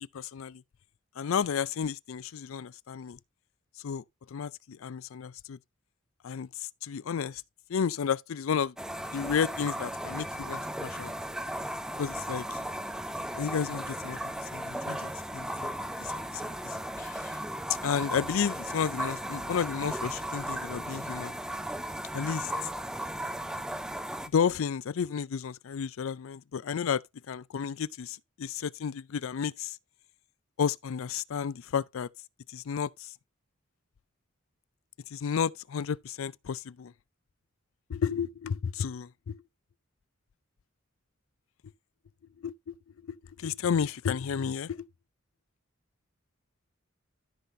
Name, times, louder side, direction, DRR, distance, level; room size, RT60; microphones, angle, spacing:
voice 1, 0.1-0.6 1.2-3.2 3.8-4.0 4.3-5.6 6.2-7.4 7.7-8.7 9.1-11.1 12.0-12.6 13.3-17.3 17.8-21.4 22.1-22.5 24.3-29.8 30.6-32.1 32.5-33.1 35.1-36.9 37.9-39.4 42.4-42.8 43.0-44.9, left 7 dB, 80° left, 0.4 m, -32 dB
sound 1, 8.8-24.3, right 1 dB, 5° right, 0.5 m, -36 dB
13.0 x 5.8 x 2.6 m
head